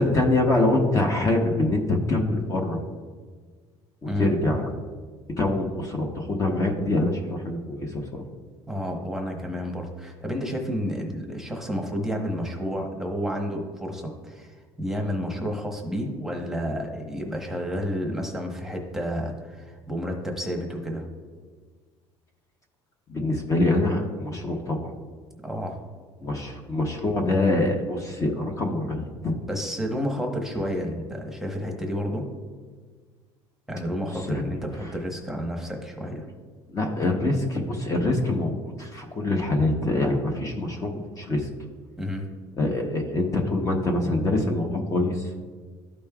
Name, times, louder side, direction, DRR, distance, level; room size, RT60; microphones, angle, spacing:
voice 1, 0.0-2.8 4.0-4.7 5.4-8.2 23.1-24.9 26.2-29.3 34.3-34.5 36.7-41.5 42.6-45.2, left 2 dB, 30° left, 2 dB, 0.9 m, -25 dB
voice 2, 8.7-21.0 25.4-25.8 29.5-32.3 33.7-36.3 42.0-42.3, equal, 5° right, 1 dB, 1.0 m, -30 dB
13.0 x 5.2 x 2.3 m, 1.5 s
cardioid pair, 130°, 11 cm